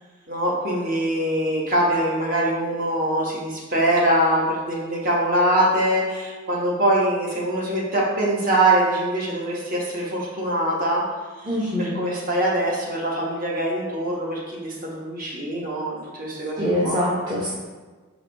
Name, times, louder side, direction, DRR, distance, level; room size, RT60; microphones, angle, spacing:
voice 1, 0.3-11.0 11.4-11.5 11.8-17.0, right 1 dB, 40° right, -4 dB, 1.2 m, -23 dB
voice 2, 11.4-12.0 16.6-17.5, equal, 20° right, -7 dB, 0.9 m, -24 dB
5.8 x 4.7 x 3.4 m, 1.3 s
head